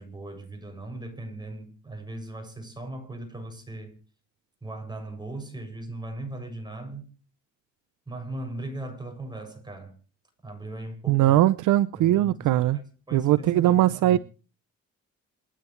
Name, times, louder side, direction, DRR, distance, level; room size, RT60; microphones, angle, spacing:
voice 1, 0.0-4.0 4.6-7.1 8.1-9.9 10.4-11.4 11.9-14.2, right 2 dB, 15° right, 7.4 m, -38 dB
voice 2, 11.1-12.8 13.1-14.2, right 14 dB, 85° right, 0.7 m, -20 dB
28.0 x 10.0 x 3.3 m
cardioid pair, 90°, 30 cm